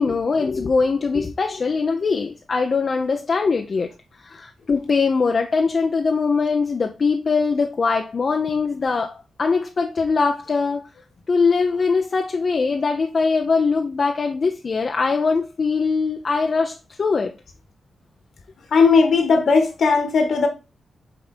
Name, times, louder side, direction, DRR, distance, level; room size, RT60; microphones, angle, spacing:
voice 1, 0.0-3.9 4.2-10.9 11.3-17.3, left 4 dB, 55° left, 0.8 m, -21 dB
voice 2, 18.7-20.5, left 4 dB, 70° left, 1.8 m, -17 dB
6.9 x 3.7 x 4.4 m
cardioid pair, 55°, 0 cm